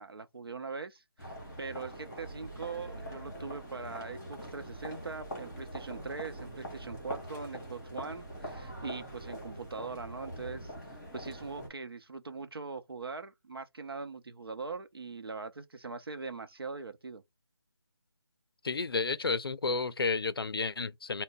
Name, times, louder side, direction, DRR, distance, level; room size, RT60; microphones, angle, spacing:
voice 1, 0.0-17.2, right 4 dB, 65° right, 0.7 m, -42 dB
sound 1, 1.2-11.7, equal, 10° left, 1.5 m, -43 dB
voice 2, 18.6-21.2, left 4 dB, 65° left, 0.5 m, -31 dB
3.5 x 2.1 x 3.9 m
figure-of-eight pair, 175°, 13 cm